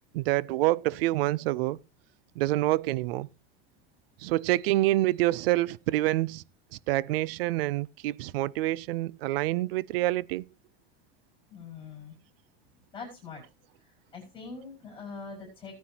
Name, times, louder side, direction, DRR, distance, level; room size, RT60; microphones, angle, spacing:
voice 1, 0.1-1.8 2.4-3.3 4.2-6.4 6.9-10.4, right 17 dB, 75° right, 0.6 m, -27 dB
voice 2, 11.5-12.1 12.9-13.4 13.8-15.8, left 4 dB, 15° left, 4.9 m, -43 dB
17.5 x 9.5 x 2.8 m
supercardioid pair, 170°, 29 cm